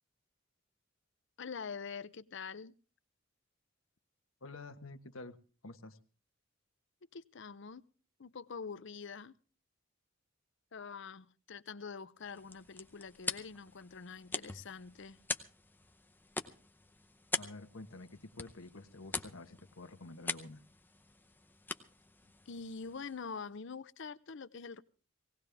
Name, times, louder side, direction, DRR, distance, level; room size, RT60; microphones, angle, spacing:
voice 1, 1.4-2.7 7.1-7.8 8.2-9.3 10.7-15.2 22.5-24.8, left 5 dB, 60° left, 0.7 m, -45 dB
voice 2, 4.4-5.4 5.6-6.0 17.4-20.6, left 2 dB, 85° left, 1.2 m, -49 dB
sound 1, 12.2-23.4, left 3 dB, 10° left, 0.7 m, -44 dB
18.0 x 18.0 x 3.5 m
head